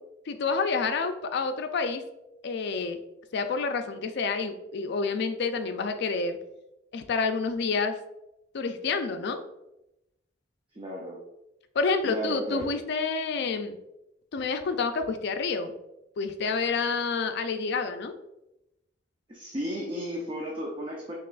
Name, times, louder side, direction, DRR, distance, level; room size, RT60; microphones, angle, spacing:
voice 1, 0.3-2.0 2.4-3.0 3.3-6.4 6.9-8.0 8.5-9.4 11.7-13.8 14.3-15.7 16.2-18.1, left 4 dB, 60° left, 8 dB, 0.4 m, -28 dB
voice 2, 10.8-11.2 12.0-12.7 19.3-21.1, equal, 25° right, -2 dB, 0.6 m, -34 dB
4.7 x 3.0 x 2.4 m, 0.88 s
head